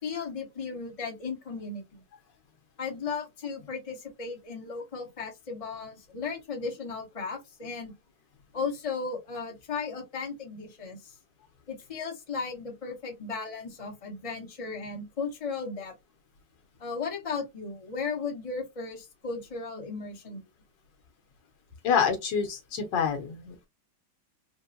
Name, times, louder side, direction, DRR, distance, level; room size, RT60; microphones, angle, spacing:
voice 1, 0.0-2.0 2.8-7.9 8.5-11.1 11.7-15.9 16.8-20.4, left 4 dB, 20° left, 1.1 m, -36 dB
voice 2, 21.8-23.7, left 6 dB, 75° left, 1.7 m, -27 dB
4.3 x 2.2 x 2.6 m
omnidirectional pair, 2.0 m